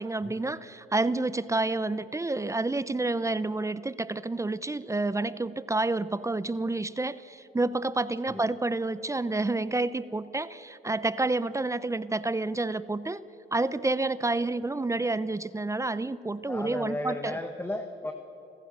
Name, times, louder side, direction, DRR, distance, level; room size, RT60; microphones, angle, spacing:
voice 1, 0.0-13.2 13.5-17.4, right 2 dB, 15° right, 16 dB, 0.6 m, -29 dB
voice 2, 16.5-18.1, left 1 dB, 10° left, 6 dB, 1.3 m, -34 dB
27.0 x 15.0 x 6.7 m, 2.9 s
cardioid pair, 90°, 20 cm